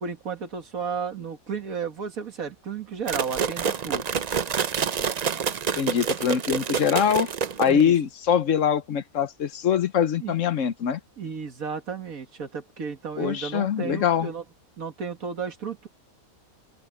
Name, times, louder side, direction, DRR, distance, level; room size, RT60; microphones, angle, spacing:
voice 1, 0.0-4.1 7.6-8.0 10.2-10.6 11.2-14.4 14.8-15.9, right 6 dB, 75° right, 2.2 m, -33 dB
sound 1, 3.1-8.0, right 7 dB, 55° right, 0.4 m, -27 dB
voice 2, 5.8-7.3 7.6-11.0 13.2-14.3, left 8 dB, 65° left, 1.1 m, -23 dB
open air
omnidirectional pair, 1.5 m